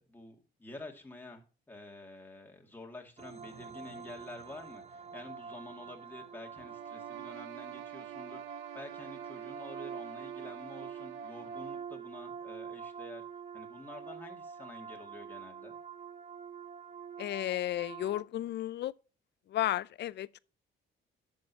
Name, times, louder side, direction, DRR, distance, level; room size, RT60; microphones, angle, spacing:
voice 1, 0.0-13.2 13.5-15.8, left 2 dB, 10° left, 2.2 m, -49 dB
sound 1, 3.2-18.2, right 6 dB, 35° right, 0.7 m, -46 dB
sound 2, 6.5-11.9, right 17 dB, 85° right, 0.5 m, -48 dB
voice 2, 17.2-18.9 19.5-20.4, left 13 dB, 60° left, 0.4 m, -33 dB
11.5 x 6.5 x 2.8 m
cardioid pair, 90°, 20 cm